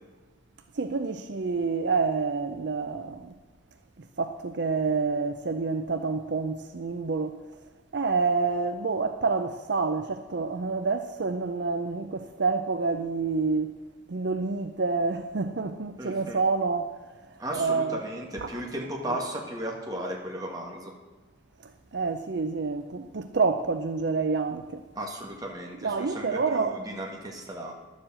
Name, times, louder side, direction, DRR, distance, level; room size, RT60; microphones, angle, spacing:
voice 1, 0.7-3.3 4.0-7.4 7.9-13.8 14.1-17.2 17.5-18.0 18.4-18.5 19.1-19.2 21.6-24.8 25.8-26.8, right 4 dB, 60° right, 0.6 m, -28 dB
voice 2, 16.0-16.4 17.4-20.9 25.0-27.7, right 1 dB, 20° right, 1.9 m, -35 dB
11.5 x 7.4 x 7.5 m
head